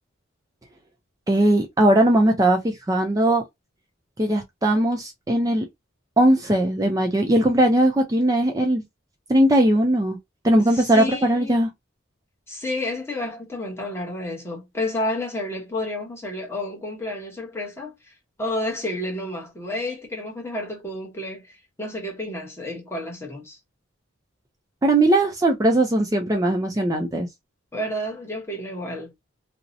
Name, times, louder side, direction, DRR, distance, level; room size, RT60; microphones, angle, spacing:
voice 1, 1.3-3.4 4.2-5.7 6.2-8.8 9.3-10.2 10.4-11.7 24.8-27.3, right 1 dB, 15° right, 0.3 m, -19 dB
voice 2, 10.7-11.6 12.5-18.1 18.4-23.6 27.7-29.1, left 1 dB, 15° left, 0.8 m, -30 dB
2.6 x 2.0 x 2.5 m
head